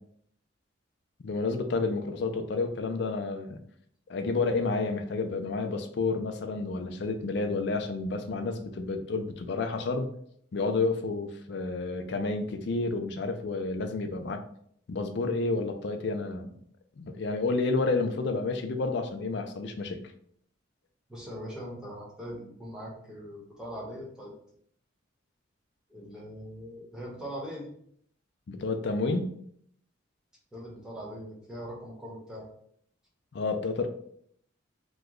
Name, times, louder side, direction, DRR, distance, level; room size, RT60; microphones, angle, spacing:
voice 1, 1.2-3.6 4.1-10.1 10.5-14.4 14.9-16.5 17.0-20.0 28.5-29.4 33.3-33.9, left 3 dB, 60° left, 6 dB, 0.4 m, -30 dB
voice 2, 21.1-24.3 25.9-27.7 30.5-32.5, equal, 5° right, -4 dB, 0.9 m, -41 dB
3.0 x 2.2 x 3.6 m, 0.66 s
head